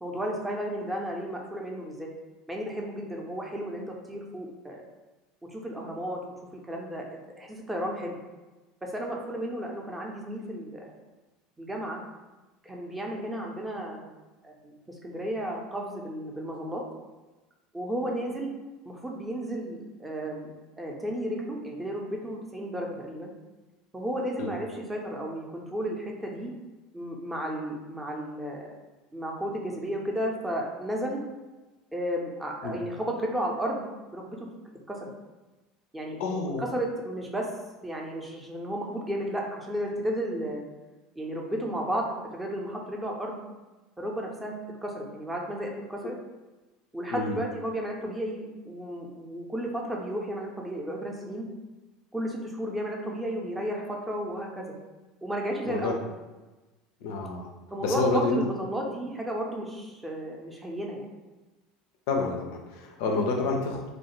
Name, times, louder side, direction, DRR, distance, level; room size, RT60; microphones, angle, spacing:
voice 1, 0.0-2.1 2.5-4.8 5.5-6.2 6.5-7.0 7.4-8.2 8.8-10.9 11.6-12.0 12.6-14.1 14.4-14.7 15.0-16.8 17.7-18.6 18.9-23.3 23.9-26.5 26.9-28.7 29.1-31.2 31.9-34.5 34.9-35.1 35.9-36.2 36.6-37.5 37.8-40.6 41.2-43.4 44.0-46.1 46.9-51.5 52.1-54.7 55.2-56.0 57.7-61.1, equal, 10° right, 0 dB, 0.5 m, -33 dB
voice 2, 36.2-36.6 47.1-47.4 55.7-55.9 57.0-57.5 57.8-58.4 62.1-63.9, left 3 dB, 60° left, 2 dB, 0.3 m, -28 dB
2.3 x 2.2 x 3.0 m, 1.1 s
figure-of-eight pair, 70°, 0 cm